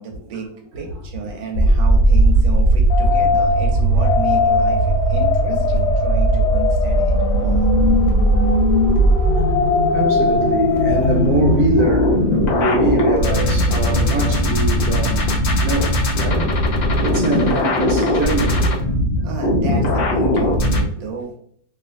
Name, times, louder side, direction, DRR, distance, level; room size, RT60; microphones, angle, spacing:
voice 1, 0.0-7.7 19.2-21.4, right 5 dB, 90° right, 1.4 m, -31 dB
sound 1, 1.5-20.8, equal, 80° left, 0.6 m, -17 dB
voice 2, 9.9-15.3 15.6-16.5 16.9-18.8 19.2-19.3, right 3 dB, 70° right, 1.0 m, -23 dB
3.1 x 2.7 x 2.5 m
omnidirectional pair, 2.0 m